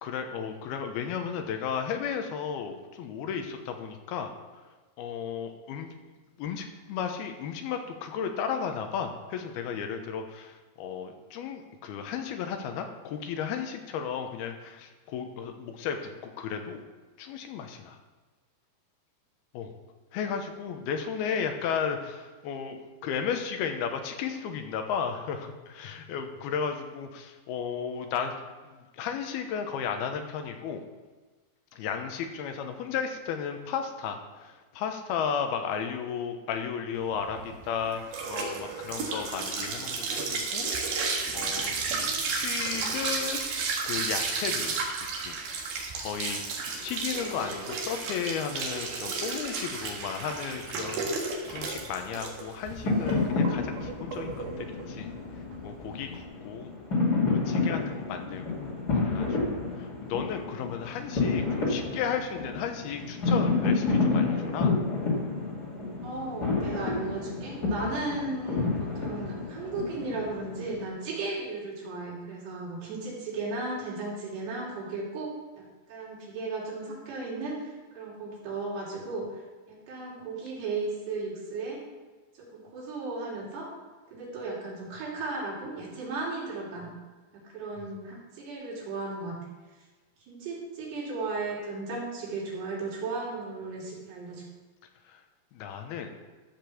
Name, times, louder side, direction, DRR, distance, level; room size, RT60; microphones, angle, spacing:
voice 1, 0.0-4.3 5.0-5.9 6.4-16.8 17.2-18.0 19.5-19.7 20.1-28.3 28.7-30.8 31.7-40.7 41.3-43.4 43.8-44.8 45.2-45.4 45.9-46.4 46.8-55.1 55.6-56.7 57.3-59.4 59.8-64.8 87.8-87.9 95.1-95.2 95.5-96.1, left 7 dB, 80° left, 6 dB, 2.7 m, -34 dB
sound 1, 37.1-56.2, right 4 dB, 70° right, 3.4 m, -33 dB
sound 2, 52.8-70.8, left 3 dB, 35° left, 1.8 m, -29 dB
voice 2, 66.0-79.4 79.7-81.8 82.4-83.7 84.1-86.9 87.3-89.4 90.3-94.4, right 3 dB, 85° right, -4 dB, 4.9 m, -35 dB
13.5 x 5.3 x 6.9 m, 1.3 s
omnidirectional pair, 4.6 m